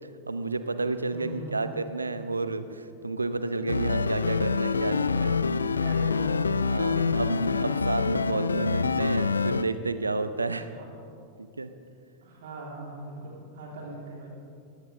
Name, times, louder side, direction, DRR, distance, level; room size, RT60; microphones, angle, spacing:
voice 1, 0.3-5.4 6.7-10.7 11.4-11.7, right 3 dB, 80° right, 11 dB, 0.8 m, -31 dB
voice 2, 1.1-1.6 5.8-7.4 10.7-10.9 12.2-14.3, right 2 dB, 60° right, -2 dB, 3.8 m, -41 dB
sound 1, 3.7-9.6, left 5 dB, 75° left, 0.4 m, -26 dB
19.5 x 17.5 x 3.5 m, 2.4 s
figure-of-eight pair, 90°, 0 cm